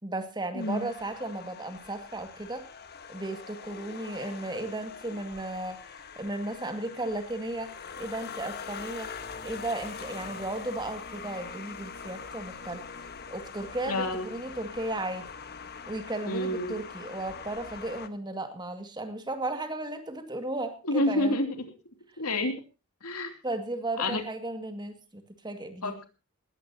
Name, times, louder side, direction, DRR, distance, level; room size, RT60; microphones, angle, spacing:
voice 1, 0.0-2.7 3.1-9.1 9.4-12.8 13.3-15.3 15.9-21.4 23.4-26.0, right 2 dB, 20° right, 7 dB, 2.1 m, -35 dB
voice 2, 0.5-0.9 13.9-14.3 16.3-16.7 20.8-21.6 22.2-22.5 23.0-23.3 24.0-24.2 25.8-26.0, left 1 dB, 90° left, 6 dB, 3.0 m, -28 dB
sound 1, 0.6-18.1, left 5 dB, 45° left, 1.4 m, -43 dB
19.5 x 16.0 x 2.9 m, 0.31 s
head